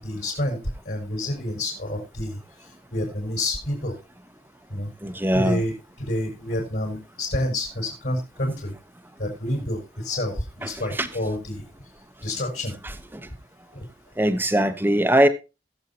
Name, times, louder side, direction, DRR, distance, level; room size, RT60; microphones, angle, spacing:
voice 1, 0.0-0.6 0.8-2.4 2.9-3.9 4.7-4.9 5.3-8.7 9.2-11.6 12.2-12.7 13.7-13.8, left 1 dB, 60° left, 5.8 m, -28 dB
voice 2, 5.0-5.6 10.6-10.7 11.0-11.1 13.1-13.3 14.2-15.3, right 1 dB, 10° right, 0.9 m, -21 dB
20.5 x 7.4 x 2.9 m
head